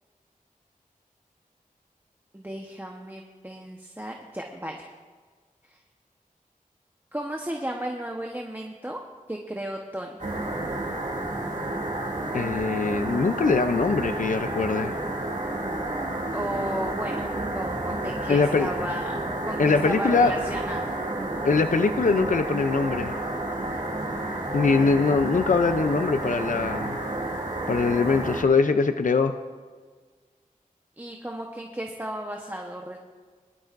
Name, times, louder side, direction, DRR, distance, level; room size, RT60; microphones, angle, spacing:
voice 1, 2.3-4.9 5.6-5.8 7.1-9.0 9.3-10.2 16.3-17.3 17.5-19.2 19.5-21.0 31.0-33.0, right 1 dB, 15° right, 1 dB, 1.1 m, -34 dB
sound 1, 10.2-28.4, right 1 dB, 55° right, 2.4 m, -30 dB
voice 2, 12.3-14.9 18.3-18.7 19.6-20.3 21.4-23.2 24.5-27.0 27.7-29.3, left 4 dB, 65° left, 8 dB, 0.5 m, -22 dB
21.0 x 12.0 x 2.6 m, 1.5 s
wide cardioid pair, 65°, 15 cm